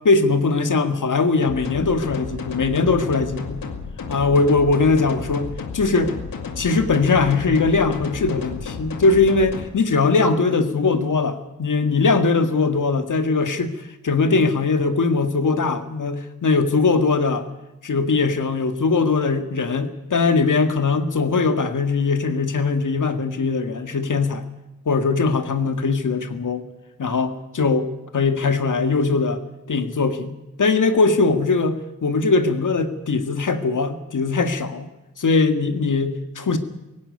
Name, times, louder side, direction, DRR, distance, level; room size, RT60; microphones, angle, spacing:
voice 1, 0.0-3.6 4.1-5.5 5.7-6.1 6.6-13.7 14.0-17.5 17.8-24.4 24.9-26.6 27.0-27.9 28.1-29.4 29.7-30.3 30.6-34.9 35.2-36.6, left 4 dB, 70° left, 8 dB, 2.0 m, -20 dB
sound 1, 1.4-9.6, left 5 dB, 85° left, 2.0 m, -32 dB
17.5 x 16.5 x 9.7 m, 0.98 s
cardioid pair, 45°, 32 cm